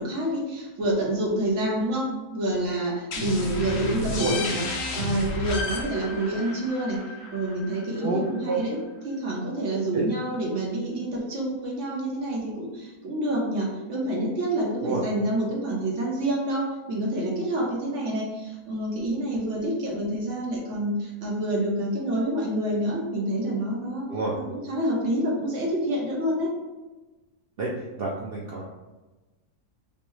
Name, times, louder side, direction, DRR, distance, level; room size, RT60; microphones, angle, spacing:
voice 1, 0.0-4.6 4.9-7.0 7.3-8.8 9.0-24.1 24.5-26.5, right 1 dB, 55° right, -2 dB, 1.1 m, -27 dB
sound 1, 3.1-8.6, left 2 dB, 60° left, 0.7 m, -32 dB
voice 2, 8.0-8.6 9.9-10.0 14.8-15.0 24.1-24.3 27.6-27.7 28.0-28.6, right 3 dB, 80° right, -4 dB, 0.5 m, -28 dB
5.4 x 2.0 x 3.1 m, 1.2 s
omnidirectional pair, 1.7 m